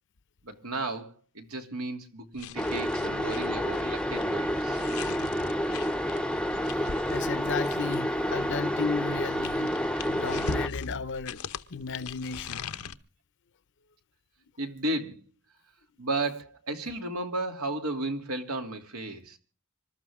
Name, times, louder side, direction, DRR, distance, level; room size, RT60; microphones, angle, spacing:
voice 1, 0.4-4.8 14.6-15.2 16.0-19.4, right 2 dB, 85° right, 2.8 m, -34 dB
sound 1, 2.3-8.1 9.0-12.9, left 5 dB, 90° left, 0.9 m, -40 dB
sound 2, 2.6-10.7, equal, 5° left, 0.7 m, -29 dB
voice 2, 7.1-11.4 11.7-12.7, left 5 dB, 55° left, 0.7 m, -34 dB
26.5 x 13.0 x 3.6 m
head